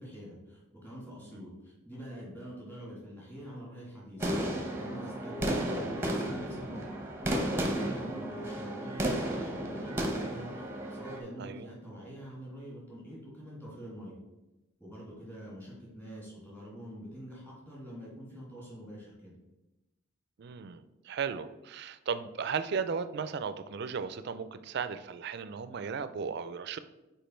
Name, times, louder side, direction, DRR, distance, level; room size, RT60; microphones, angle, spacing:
voice 1, 0.0-6.9 7.3-14.2 14.8-19.3, equal, 10° left, -6 dB, 2.3 m, -45 dB
sound 1, 4.2-11.2, right 1 dB, 10° right, 0.8 m, -33 dB
voice 2, 11.4-11.7 20.4-26.8, right 6 dB, 50° right, 12 dB, 0.4 m, -36 dB
5.2 x 4.5 x 4.4 m, 0.99 s
head